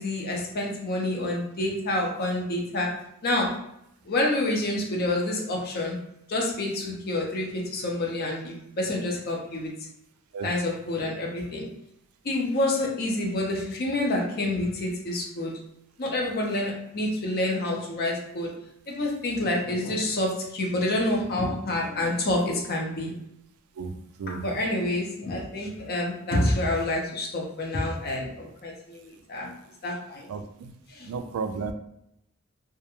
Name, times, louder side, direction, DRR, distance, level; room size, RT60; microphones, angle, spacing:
voice 1, 0.0-2.9 3.2-3.5 4.1-6.0 6.3-9.7 10.4-11.7 12.2-15.5 16.0-18.5 18.9-23.1 24.4-29.5 29.8-30.3 30.9-31.1, left 1 dB, 45° left, -1 dB, 0.6 m, -28 dB
voice 2, 30.3-30.7 31.0-31.7, right 5 dB, 80° right, 11 dB, 0.3 m, -33 dB
2.3 x 2.2 x 2.9 m, 0.77 s
head